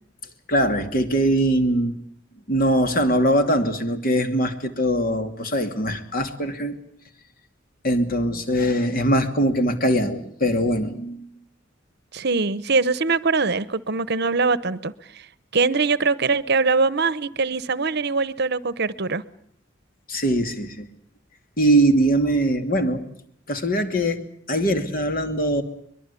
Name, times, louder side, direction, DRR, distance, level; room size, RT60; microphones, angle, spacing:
voice 1, 0.5-2.0 2.5-6.8 7.8-11.3 20.1-20.9 21.6-23.1 23.5-24.2 24.5-25.6, right 1 dB, 45° left, 7 dB, 2.7 m, -21 dB
voice 2, 12.1-15.3 15.5-19.2, right 4 dB, 55° right, 17 dB, 0.9 m, -22 dB
23.5 x 22.5 x 8.4 m, 0.65 s
head